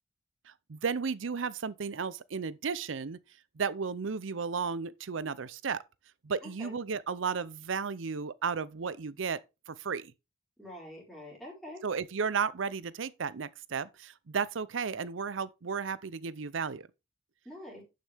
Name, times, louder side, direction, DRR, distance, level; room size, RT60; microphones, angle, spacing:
voice 1, 0.5-3.2 3.6-5.8 6.2-9.4 9.7-10.1 11.8-16.9, right 5 dB, 85° right, 0.6 m, -34 dB
voice 2, 6.4-6.8 10.6-11.8 17.4-17.8, left 1 dB, ahead, 4.2 m, -45 dB
11.0 x 6.5 x 3.5 m
head